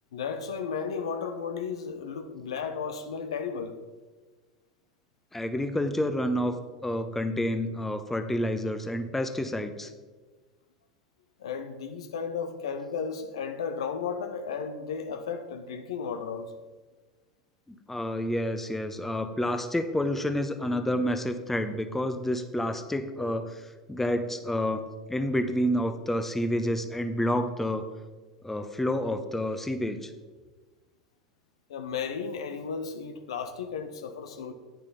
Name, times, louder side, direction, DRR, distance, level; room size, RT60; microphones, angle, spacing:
voice 1, 0.1-3.8 11.4-16.5 31.7-34.5, left 6 dB, 75° left, 0.8 m, -34 dB
voice 2, 5.3-6.6 6.8-9.9 17.9-27.9 28.4-30.1, left 1 dB, 10° left, 0.9 m, -29 dB
10.0 x 9.1 x 4.0 m
hypercardioid pair, 85°, 3 cm